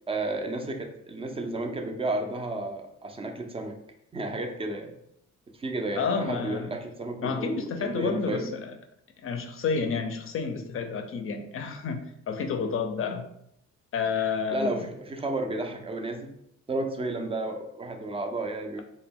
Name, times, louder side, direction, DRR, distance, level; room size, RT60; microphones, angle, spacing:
voice 1, 0.1-3.8 4.1-4.9 5.6-8.5 12.6-12.7 14.5-16.3 16.7-18.8, right 2 dB, 20° right, 5 dB, 0.4 m, -32 dB
voice 2, 6.0-6.7 7.2-8.7 9.2-13.3 13.9-14.8, left 5 dB, 45° left, 4 dB, 0.5 m, -30 dB
2.1 x 2.1 x 3.4 m, 0.75 s
cardioid pair, 90°, 30 cm